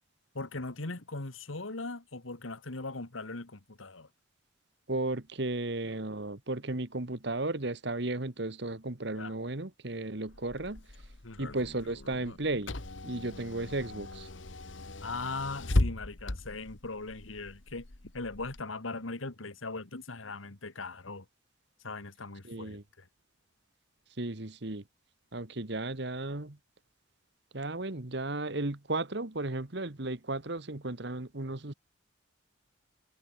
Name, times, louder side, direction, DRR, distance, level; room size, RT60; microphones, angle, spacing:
voice 1, 0.3-4.1 9.2-9.3 11.2-11.6 15.0-17.9 18.1-21.3 21.8-23.1, left 3 dB, 85° left, 2.0 m, -39 dB
voice 2, 4.9-10.8 11.4-12.7 13.0-14.3 22.4-22.8 24.2-24.8 25.3-26.6 27.5-31.7, right 2 dB, 55° right, 1.6 m, -34 dB
Car / Engine, 10.3-18.6, left 1 dB, 70° left, 1.7 m, -36 dB
head